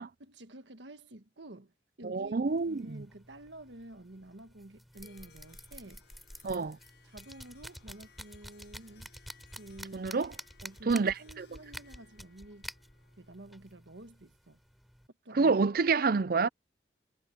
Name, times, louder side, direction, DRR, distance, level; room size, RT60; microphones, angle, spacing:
voice 1, 0.2-6.0 6.5-6.7 7.0-9.1 9.6-10.1 10.6-12.7 13.2-14.6 15.2-15.6, right 1 dB, 75° right, 1.5 m, -50 dB
voice 2, 2.0-3.0 6.4-6.8 9.9-10.3 10.9-11.5 15.3-16.5, right 4 dB, 50° right, 0.5 m, -28 dB
sound 1, 2.5-15.1, equal, ahead, 4.0 m, -50 dB
Harp, 4.9-13.7, left 5 dB, 75° left, 6.2 m, -63 dB
head